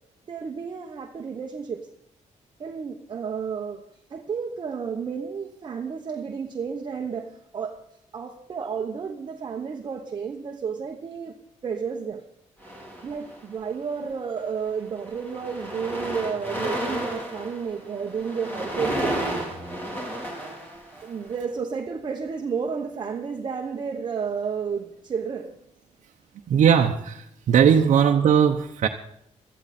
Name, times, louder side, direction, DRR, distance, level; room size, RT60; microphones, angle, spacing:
voice 1, 0.3-1.8 2.6-3.8 4.1-7.8 8.1-11.3 11.6-12.2 13.0-19.2 21.0-25.6, right 6 dB, 35° right, 1.0 m, -31 dB
sound 1, 12.6-13.6 14.4-14.6 14.9-21.3, right 1 dB, 15° left, 3.4 m, -32 dB
voice 2, 26.5-28.9, right 8 dB, 70° right, 0.9 m, -19 dB
17.5 x 13.0 x 4.3 m
wide cardioid pair, 160°, 13 cm